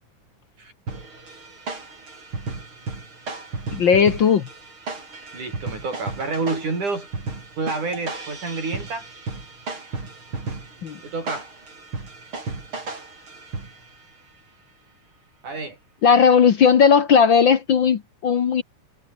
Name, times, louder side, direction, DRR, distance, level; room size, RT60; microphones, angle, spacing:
sound 1, 0.9-14.0, right 3 dB, 40° right, 6.2 m, -35 dB
voice 1, 3.7-4.4 10.8-11.0 16.0-18.6, left 6 dB, 55° left, 1.4 m, -16 dB
voice 2, 5.3-7.1 7.6-9.1 11.0-11.5 15.4-15.8, right 3 dB, 70° right, 9.0 m, -28 dB
omnidirectional pair, 3.6 m